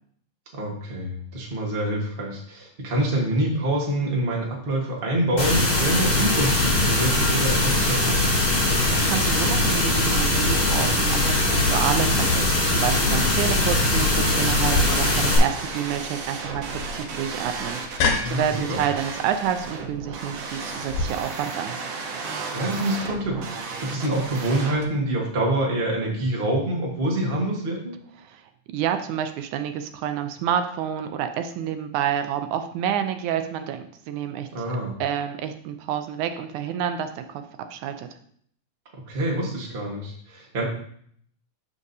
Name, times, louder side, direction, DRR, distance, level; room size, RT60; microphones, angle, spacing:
voice 1, 0.5-8.2 18.2-18.8 22.5-23.4 23.8-27.9 34.5-34.9 39.1-40.6, right 1 dB, 35° right, -2 dB, 0.8 m, -26 dB
sound 1, 5.4-15.4, left 2 dB, 40° left, 3.4 m, -21 dB
voice 2, 8.5-21.8 28.2-28.4 28.7-34.5 35.0-37.4 37.7-38.1, right 9 dB, 80° right, 8 dB, 1.9 m, -29 dB
sound 2, 14.6-24.8, right 4 dB, 60° right, 1.8 m, -34 dB
sound 3, 14.7-21.0, left 3 dB, 75° left, 2.6 m, -30 dB
12.5 x 5.0 x 2.7 m, 0.63 s
omnidirectional pair, 3.6 m